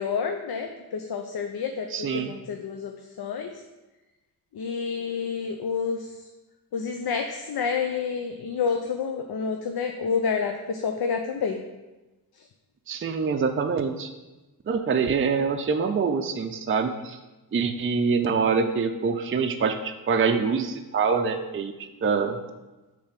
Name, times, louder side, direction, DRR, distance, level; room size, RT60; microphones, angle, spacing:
voice 1, 0.0-3.5 4.5-6.1 6.7-11.6, left 6 dB, 85° left, 4 dB, 0.6 m, -29 dB
voice 2, 1.9-2.3 12.9-14.1 14.7-17.2 17.5-22.4, right 5 dB, 35° right, 5 dB, 0.4 m, -25 dB
6.7 x 3.4 x 5.7 m, 1.1 s
wide cardioid pair, 145°, 37 cm